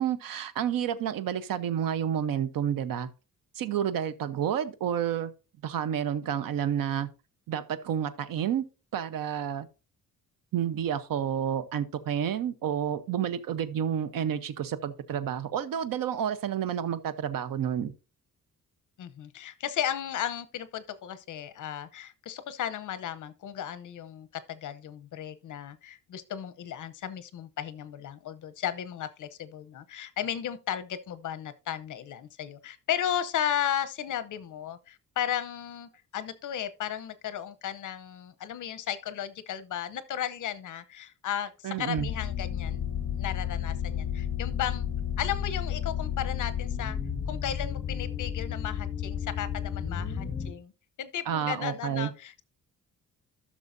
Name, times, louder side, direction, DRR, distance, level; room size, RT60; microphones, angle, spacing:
voice 1, 0.0-3.1 3.5-5.3 5.6-7.1 7.5-8.6 8.9-9.7 10.5-17.9 41.6-42.1 51.3-52.1, right 9 dB, 90° right, 0.9 m, -30 dB
voice 2, 19.0-44.9 45.2-47.0 47.3-50.7 51.0-52.4, left 10 dB, 65° left, 0.8 m, -35 dB
sound 1, 42.0-50.5, left 8 dB, 35° left, 1.3 m, -32 dB
14.5 x 6.4 x 2.6 m
wide cardioid pair, 165°, 33 cm